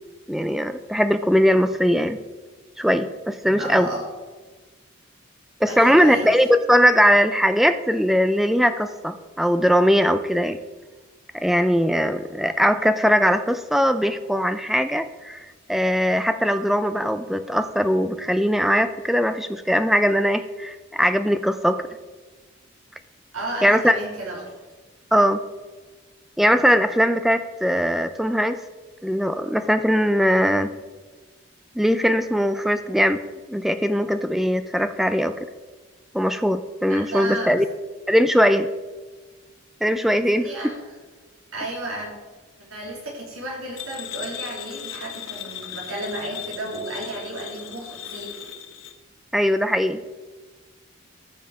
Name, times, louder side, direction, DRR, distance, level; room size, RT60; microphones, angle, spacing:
voice 1, 0.3-2.2 2.8-3.9 5.6-10.6 11.3-21.9 23.6-24.0 25.1-25.4 26.4-28.6 29.0-30.7 31.8-33.2 33.5-35.4 36.1-37.7 38.1-38.7 39.8-40.5 49.3-50.0, equal, ahead, 10 dB, 0.4 m, -20 dB
voice 2, 3.6-4.1 5.7-6.4 23.3-24.5 36.9-37.6 40.4-40.8 41.5-42.1 42.7-48.3, right 1 dB, 85° right, -2 dB, 3.3 m, -33 dB
sound 1, 43.8-48.9, left 10 dB, 75° left, 0.9 m, -37 dB
14.0 x 5.8 x 4.8 m, 1.3 s
head